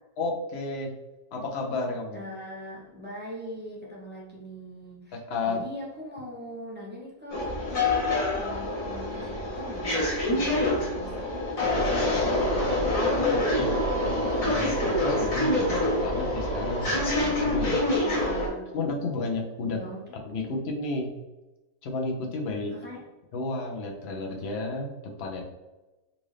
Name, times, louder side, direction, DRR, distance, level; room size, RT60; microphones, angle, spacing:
voice 1, 0.2-0.9 1.3-2.2 5.3-5.6 13.3-17.8 18.7-19.8 20.2-21.1 21.8-22.7 23.3-24.9 25.2-25.4, left 3 dB, 60° left, 1 dB, 0.9 m, -32 dB
voice 2, 2.1-12.8 18.0-18.7 19.6-20.1 22.7-23.0, equal, 10° right, -6 dB, 0.8 m, -42 dB
sound 1, 7.3-18.5, left 1 dB, 80° left, 1.7 m, -26 dB
4.0 x 2.5 x 3.2 m, 1.1 s
omnidirectional pair, 1.4 m